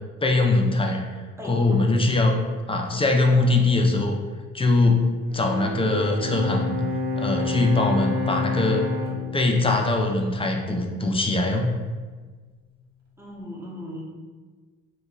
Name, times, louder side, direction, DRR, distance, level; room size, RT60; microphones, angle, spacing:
voice 1, 0.2-1.0 1.4-2.4 2.7-4.2 4.5-5.0 5.3-6.8 7.2-8.9 9.3-11.7, left 2 dB, 20° left, 2 dB, 0.4 m, -21 dB
Bowed string instrument, 5.3-10.8, left 3 dB, 65° right, 0.8 m, -29 dB
voice 2, 13.2-14.0, left 1 dB, 10° right, -3 dB, 0.7 m, -37 dB
3.0 x 2.2 x 3.7 m, 1.4 s
cardioid pair, 90°, 30 cm